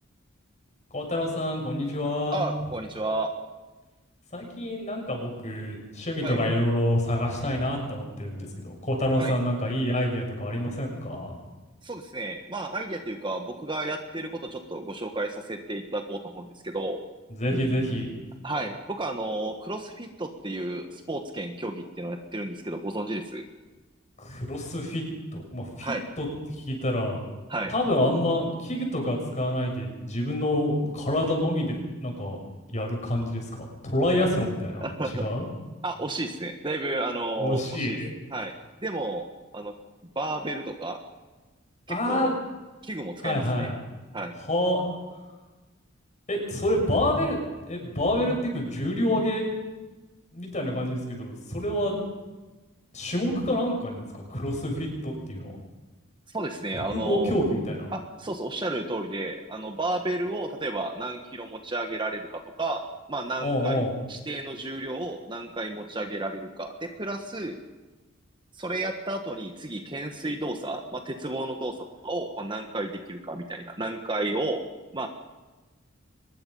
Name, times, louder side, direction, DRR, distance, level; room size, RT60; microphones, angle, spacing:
voice 1, 0.9-2.4 4.3-11.3 17.3-18.1 24.2-25.0 25.3-26.3 26.7-27.2 27.7-32.4 32.7-34.9 35.2-35.4 37.4-38.1 41.9-42.4 43.2-43.7 44.5-44.8 46.3-47.4 47.7-49.4 50.3-51.9 52.9-55.5 56.7-57.9 63.4-63.9, left 1 dB, 35° left, 1 dB, 6.7 m, -27 dB
voice 2, 2.3-3.3 6.2-6.4 9.2-9.3 11.8-17.0 18.4-23.4 25.8-26.0 27.5-27.7 34.8-35.3 35.8-38.0 38.3-38.5 38.8-39.3 39.5-39.7 40.1-41.0 41.9-42.3 42.8-43.7 44.1-44.3 56.3-57.3 57.9-63.8 64.1-67.6 68.5-71.7 72.0-74.6 74.9-75.1, right 2 dB, 25° right, 5 dB, 1.5 m, -32 dB
24.0 x 21.0 x 5.6 m, 1.2 s
head